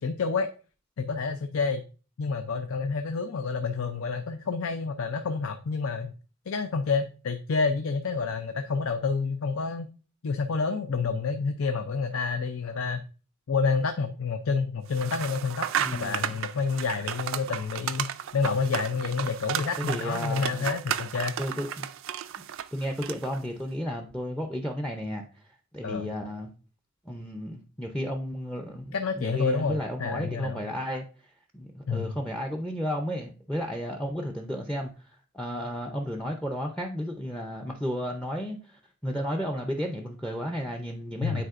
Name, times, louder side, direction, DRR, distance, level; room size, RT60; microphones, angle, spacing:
voice 1, 0.0-0.5 1.0-1.8 2.2-6.1 6.5-9.9 10.2-13.1 13.5-21.3 25.8-26.1 28.9-30.6 31.9-32.1 41.2-41.4, left 5 dB, 75° left, 8 dB, 0.5 m, -29 dB
sound 1, 14.9-23.4, right 9 dB, 65° right, 0.4 m, -33 dB
voice 2, 15.8-16.4 19.9-20.7 21.4-21.9 22.7-25.4 25.7-26.5 27.1-31.0 31.5-41.5, equal, 5° left, 4 dB, 0.5 m, -33 dB
9.2 x 4.2 x 2.5 m, 0.36 s
head